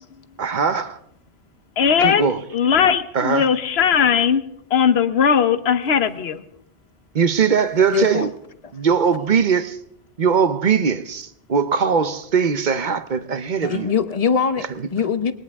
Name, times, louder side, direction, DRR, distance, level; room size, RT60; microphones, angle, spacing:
voice 1, 0.4-1.0 2.0-2.4 3.1-3.5 7.1-8.3 8.7-9.8 10.2-13.9, right 6 dB, 50° right, 0.9 m, -20 dB
voice 2, 1.8-4.4 4.7-6.4, left 7 dB, 70° left, 1.2 m, -18 dB
voice 3, 7.9-8.3 13.6-15.3, left 6 dB, 35° left, 0.9 m, -22 dB
21.5 x 18.5 x 3.6 m
omnidirectional pair, 1.1 m